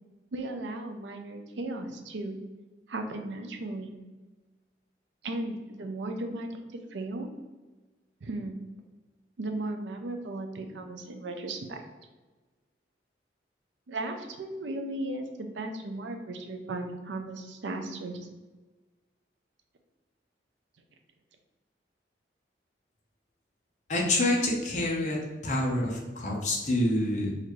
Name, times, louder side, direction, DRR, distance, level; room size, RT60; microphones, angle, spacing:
voice 1, 0.3-2.4 2.9-4.0 5.2-6.6 6.9-7.3 8.2-8.6 9.4-11.8 13.9-18.3, right 2 dB, 80° right, 5 dB, 0.5 m, -36 dB
voice 2, 23.9-25.2 25.4-27.3, left 1 dB, 40° left, -2 dB, 0.8 m, -27 dB
4.2 x 2.5 x 3.1 m, 1.2 s
head